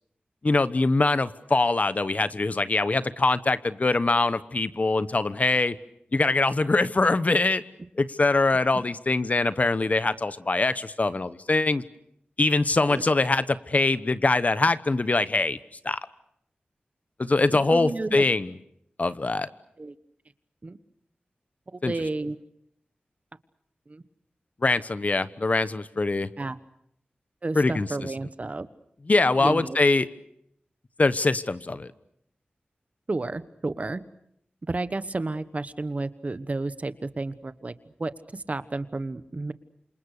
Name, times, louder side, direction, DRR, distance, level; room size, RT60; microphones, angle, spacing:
voice 1, 0.4-5.7 6.1-7.6 8.0-11.8 12.4-15.6 15.8-16.0 17.2-18.5 19.0-19.5 21.8-21.9 24.6-26.3 27.5-27.9 29.1-30.1 31.0-31.9, left 3 dB, 45° left, 14 dB, 1.1 m, -23 dB
voice 2, 17.5-18.2 19.8-19.9 20.6-20.8 21.7-22.4 23.9-24.0 26.4-26.6 27.4-28.7 29.4-29.8 33.1-34.0 34.6-37.7 38.0-39.5, right 2 dB, 40° right, 13 dB, 1.2 m, -31 dB
28.5 x 26.5 x 6.7 m, 0.74 s
wide cardioid pair, 70°, 4 cm